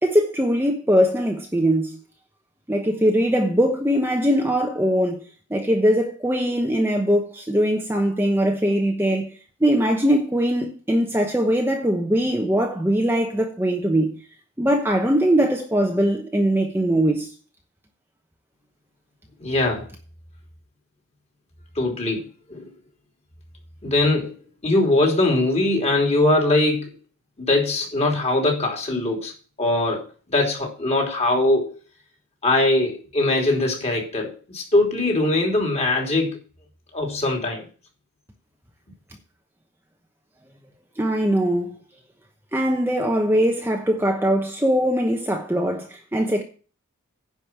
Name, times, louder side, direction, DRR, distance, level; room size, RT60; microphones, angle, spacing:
voice 1, 0.0-2.0 2.7-5.2 5.5-9.3 9.6-14.1 14.6-17.3 41.0-41.7 42.5-46.4, equal, 10° right, 1.0 m, -21 dB
voice 2, 19.4-19.9 21.7-22.2 22.5-22.7 23.8-24.3 24.6-26.9 27.4-29.3 29.6-31.8 32.4-36.4 36.9-37.7, left 2 dB, 30° left, 3.2 m, -21 dB
10.0 x 5.3 x 7.4 m
head